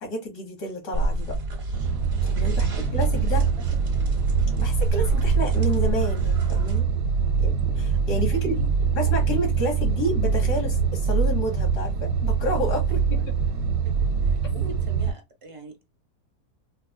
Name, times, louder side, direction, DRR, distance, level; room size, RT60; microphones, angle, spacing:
voice 1, 0.0-1.4 2.2-3.5 4.6-6.9 7.4-8.6 8.9-13.0 14.6-14.7, left 1 dB, 85° left, 2.0 m, -30 dB
sound 1, 0.9-6.8, right 2 dB, 45° right, 1.2 m, -30 dB
sound 2, 1.7-15.1, right 6 dB, 75° right, 1.1 m, -23 dB
voice 2, 2.5-4.2 8.2-9.4 10.3-10.7 12.9-13.3 13.8-15.8, right 3 dB, 30° right, 0.7 m, -46 dB
4.5 x 2.3 x 2.3 m
omnidirectional pair, 1.7 m